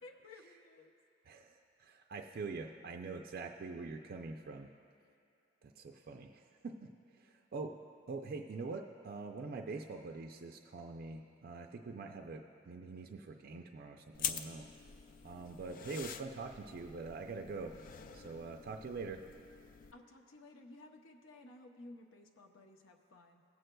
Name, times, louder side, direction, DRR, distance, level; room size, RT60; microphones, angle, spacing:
voice 1, 0.0-0.9 19.9-23.4, left 2 dB, 75° left, 3 dB, 0.7 m, -55 dB
voice 2, 1.3-4.7 5.6-7.7 8.1-14.7 15.2-17.7 18.1-19.2, right 4 dB, 50° right, 3 dB, 0.4 m, -44 dB
sound 1, 14.1-19.9, left 7 dB, 45° left, 0.3 m, -45 dB
19.0 x 7.8 x 2.2 m, 2.6 s
head